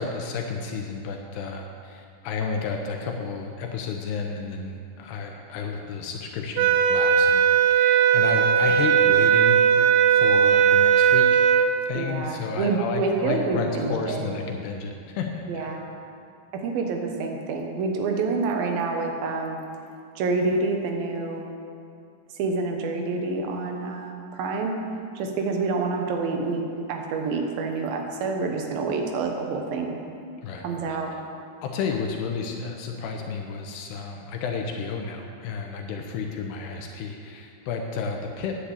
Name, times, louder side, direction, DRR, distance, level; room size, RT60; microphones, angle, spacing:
voice 1, 0.0-7.4 7.7-9.6 10.1-11.5 11.9-15.3 15.5-15.7 30.4-31.0 31.6-38.5, left 5 dB, 80° left, 2 dB, 2.9 m, -31 dB
sound 1, 6.6-11.7, right 8 dB, 85° right, 2.8 m, -18 dB
voice 2, 11.9-14.3 15.5-15.8 16.5-19.6 20.2-21.5 22.3-24.7 25.2-26.6 26.9-30.0 30.6-31.1, right 3 dB, 70° right, 2 dB, 2.8 m, -27 dB
10.0 x 8.2 x 8.3 m, 2.5 s
omnidirectional pair, 4.8 m